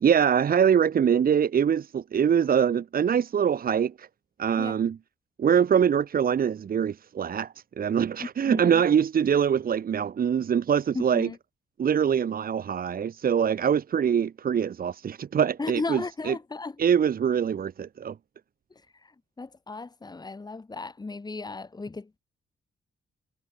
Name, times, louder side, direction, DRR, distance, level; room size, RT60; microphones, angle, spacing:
voice 1, 0.0-4.1 4.4-5.0 5.4-11.3 11.8-16.4 16.8-18.1, right 8 dB, 55° right, 1.4 m, -24 dB
voice 2, 10.9-11.4 15.6-16.7 19.4-22.2, left 3 dB, 20° left, 2.4 m, -35 dB
cardioid pair, 105°, 18 cm